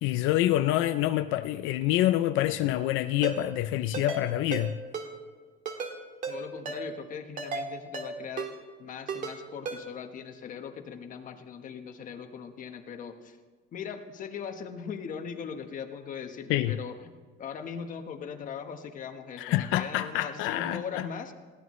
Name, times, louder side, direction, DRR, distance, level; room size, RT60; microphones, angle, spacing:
voice 1, 0.0-4.8 16.5-16.7 19.4-21.0, left 14 dB, 85° left, 0.5 m, -26 dB
Ringtone, 3.2-3.4 3.9-4.2 4.5-4.6 4.9-5.1 5.7-5.9 6.2-6.4 6.7-6.8 7.4-7.6 7.9-8.1 8.4-8.5 9.1-9.3 9.7-9.8, right 5 dB, 40° right, 2.0 m, -34 dB
voice 2, 6.3-8.5 8.8-13.4 13.7-17.1 17.4-21.3, left 7 dB, 40° left, 1.3 m, -40 dB
21.5 x 16.0 x 3.2 m
cardioid pair, 160°, 20 cm